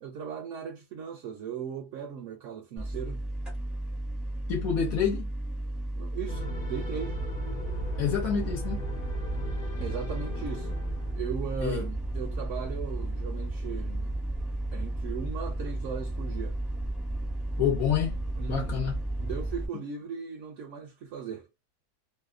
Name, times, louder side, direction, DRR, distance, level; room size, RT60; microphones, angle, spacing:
voice 1, 0.0-3.2 6.0-7.2 9.8-10.8 11.2-14.1 14.7-16.6 18.4-21.5, right 7 dB, 65° right, 0.8 m, -38 dB
sound 1, 2.8-19.7, right 1 dB, ahead, 0.5 m, -33 dB
voice 2, 4.5-5.3 8.0-8.8 11.6-11.8 17.6-18.2 18.5-19.0, left 8 dB, 70° left, 1.0 m, -28 dB
sound 2, 6.3-11.8, equal, 55° left, 0.9 m, -40 dB
2.7 x 2.1 x 2.3 m
omnidirectional pair, 1.7 m